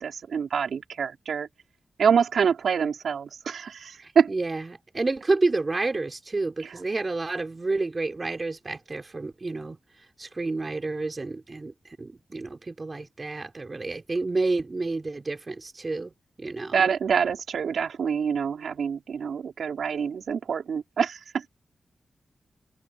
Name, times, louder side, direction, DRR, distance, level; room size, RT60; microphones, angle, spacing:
voice 1, 0.0-1.5 2.0-4.3 6.6-6.7 16.7-21.2, right 6 dB, 90° right, 4.1 m, -26 dB
voice 2, 4.0-9.8 10.2-11.7 12.0-16.1 16.4-16.9, right 3 dB, 30° right, 4.1 m, -29 dB
wide cardioid pair, 115°, 0 cm